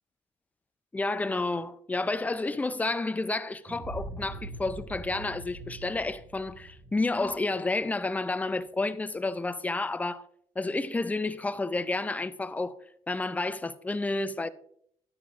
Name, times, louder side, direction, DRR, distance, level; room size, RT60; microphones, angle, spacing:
voice 1, 0.9-10.2 10.6-12.8 13.1-14.5, left 2 dB, 15° left, 0.5 m, -30 dB
sound 1, 3.7-8.4, right 2 dB, 40° right, 1.4 m, -43 dB
10.0 x 8.7 x 2.5 m
cardioid pair, 100°, 12 cm